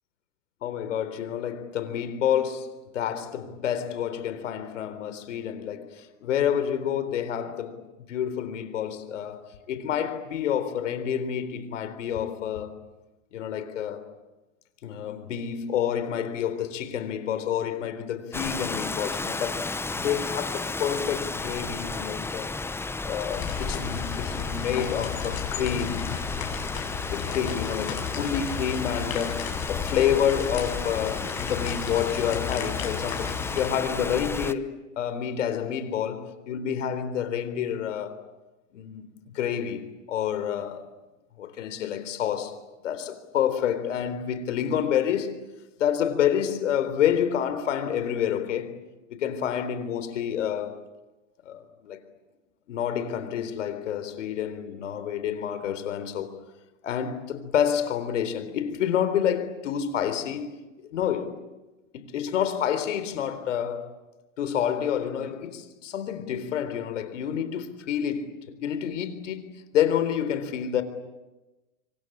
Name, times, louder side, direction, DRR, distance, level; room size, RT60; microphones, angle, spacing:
voice 1, 0.6-12.8 13.3-14.1 14.8-19.7 20.0-22.5 23.0-26.1 27.1-38.2 38.7-40.9 41.4-42.6 42.8-45.4 45.8-48.7 49.1-50.8 51.5-52.0 52.7-56.4 56.8-60.5 60.8-61.4 61.9-63.9 64.4-70.8, left 9 dB, 75° left, 3.9 m, -28 dB
Rain, 18.3-34.5, left 3 dB, 5° left, 0.9 m, -33 dB
sound 1, 23.3-33.7, left 10 dB, 45° left, 7.1 m, -34 dB
26.0 x 25.5 x 8.7 m
hypercardioid pair, 115°, 37 cm